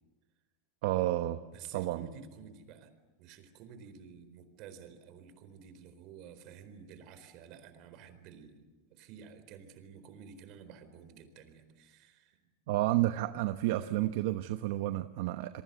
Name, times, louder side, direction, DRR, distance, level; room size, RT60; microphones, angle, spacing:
voice 1, 0.8-1.4 1.7-2.1 12.7-15.6, right 15 dB, 65° right, 10 dB, 1.0 m, -31 dB
voice 2, 1.5-2.9 3.2-12.4, right 7 dB, 50° right, 10 dB, 4.3 m, -52 dB
28.0 x 23.0 x 8.3 m, 1.2 s
supercardioid pair, 135°, 0 cm